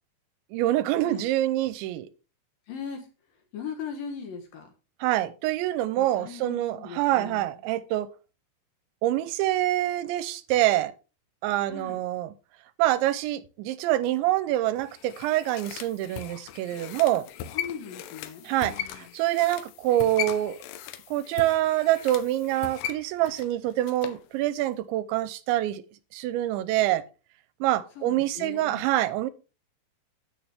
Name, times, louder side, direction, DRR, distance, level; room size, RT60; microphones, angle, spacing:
voice 1, 0.5-2.1 5.0-8.1 9.0-10.9 11.4-12.3 12.8-17.2 18.5-20.6 21.1-25.8 26.1-27.0 27.6-29.3, right 14 dB, 80° right, 2.8 m, -26 dB
voice 2, 2.7-3.1 3.5-4.7 6.0-7.5 11.7-12.0 17.5-19.1 28.0-28.9, left 6 dB, 65° left, 2.5 m, -39 dB
sound 1, 14.8-24.2 24.6-24.7, left 10 dB, 85° left, 2.4 m, -38 dB
10.0 x 8.5 x 3.5 m
omnidirectional pair, 5.6 m